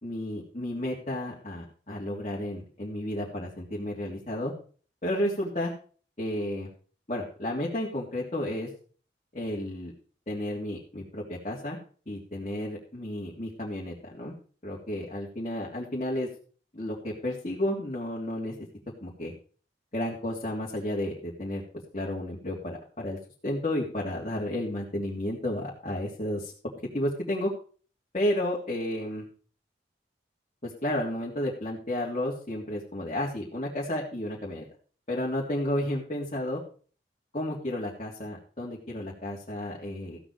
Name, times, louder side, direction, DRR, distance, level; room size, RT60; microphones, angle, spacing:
voice 1, 0.0-4.5 5.0-5.7 6.2-6.7 7.1-8.7 9.3-9.9 10.3-11.8 12.1-14.3 14.6-16.3 16.7-18.5 19.0-19.3 19.9-21.6 21.9-23.2 23.4-26.5 26.9-27.5 28.1-29.2 30.6-34.6 35.1-36.6 37.3-40.2, left 1 dB, 40° left, -3 dB, 2.9 m, -32 dB
15.5 x 8.1 x 4.7 m, 0.41 s
head